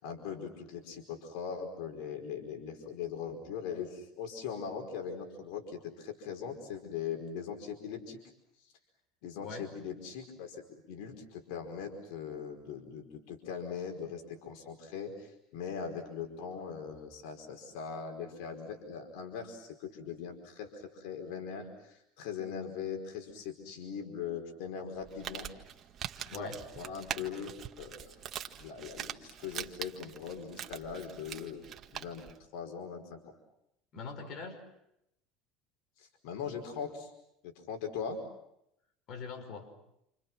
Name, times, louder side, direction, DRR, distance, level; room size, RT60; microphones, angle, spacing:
voice 1, 0.0-8.2 9.2-25.5 26.3-27.5 27.8-28.1 28.6-31.6 31.9-33.2 36.0-37.1 37.4-38.2, left 6 dB, 75° left, 4 dB, 5.0 m, -40 dB
voice 2, 9.4-9.7 26.2-26.6 33.9-34.6 39.1-39.7, left 4 dB, 45° left, 4 dB, 5.6 m, -43 dB
Crumpling crinkling, 25.0-32.4, right 9 dB, 40° right, 1.7 m, -43 dB
29.0 x 29.0 x 6.1 m, 0.80 s
supercardioid pair, 130°, 0 cm